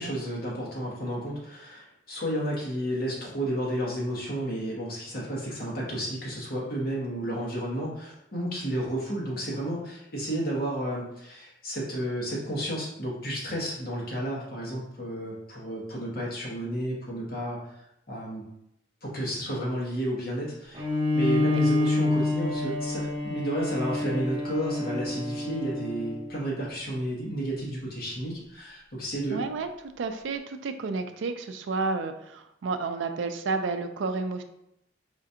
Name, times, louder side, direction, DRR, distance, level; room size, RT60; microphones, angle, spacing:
voice 1, 0.0-17.6 18.1-18.4 19.0-20.8 21.1-29.4, right 1 dB, 50° left, -5 dB, 1.2 m, -32 dB
Bowed string instrument, 20.7-26.4, left 2 dB, 25° right, 0.8 m, -28 dB
voice 2, 29.3-29.7 30.0-34.4, right 4 dB, 80° right, 7 dB, 0.4 m, -31 dB
5.0 x 2.4 x 2.7 m, 0.80 s
head